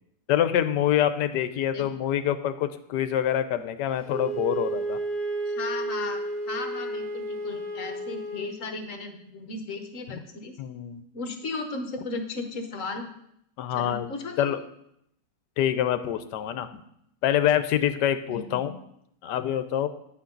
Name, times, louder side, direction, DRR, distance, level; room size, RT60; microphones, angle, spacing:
voice 1, 0.3-5.0 10.1-10.2 10.6-11.0 13.6-14.1 14.4-14.6 15.6-16.7 17.2-18.7 19.2-19.9, left 10 dB, 80° left, 11 dB, 1.3 m, -25 dB
Wind instrument woodwind instrument, 4.1-8.5, right 2 dB, 30° left, 1.9 m, -32 dB
voice 2, 5.4-10.5 11.1-13.0 13.7-14.5 18.3-18.7, left 3 dB, 50° left, 5 dB, 1.5 m, -35 dB
11.0 x 8.5 x 3.9 m, 0.75 s
omnidirectional pair, 1.8 m